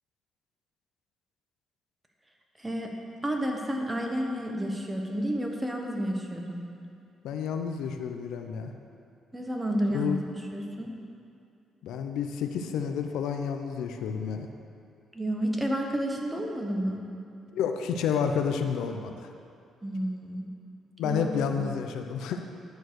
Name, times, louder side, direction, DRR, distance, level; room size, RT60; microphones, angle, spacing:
voice 1, 2.6-2.9 3.2-6.6 9.3-10.1 10.5-10.9 15.1-17.0 19.8-20.5 21.0-21.2 21.6-21.7, equal, 10° right, 1 dB, 1.3 m, -30 dB
voice 2, 7.2-8.7 9.9-10.2 11.8-14.5 17.5-19.3 21.0-22.4, left 7 dB, 85° left, 5 dB, 0.5 m, -30 dB
11.0 x 4.7 x 6.2 m, 2.5 s
cardioid pair, 85°, 0 cm